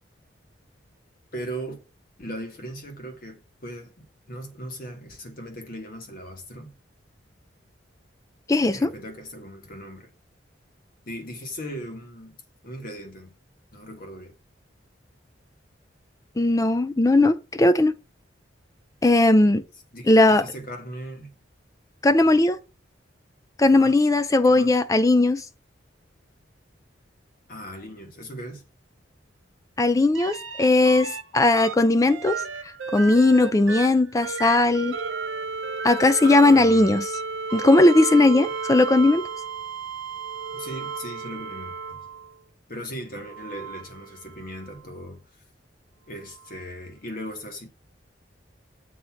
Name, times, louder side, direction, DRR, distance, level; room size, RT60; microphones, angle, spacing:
voice 1, 1.3-1.8 2.2-6.7 8.7-10.1 11.0-13.3 13.7-14.3 19.9-21.3 23.8-23.9 24.5-24.7 27.5-28.7 36.2-37.0 40.5-42.1 42.7-45.2 46.1-47.7, equal, 50° left, 1.4 m, -38 dB
voice 2, 8.5-8.9 16.4-18.0 19.0-19.6 20.1-20.5 22.0-22.6 23.6-25.4 29.8-32.4 32.9-35.0 35.8-37.1 37.5-39.2, left 2 dB, 20° left, 0.4 m, -18 dB
sound 1, 30.1-31.2 31.6-42.3 43.2-44.7 46.5-46.6, right 4 dB, 90° right, 0.7 m, -33 dB
7.7 x 2.9 x 5.7 m
head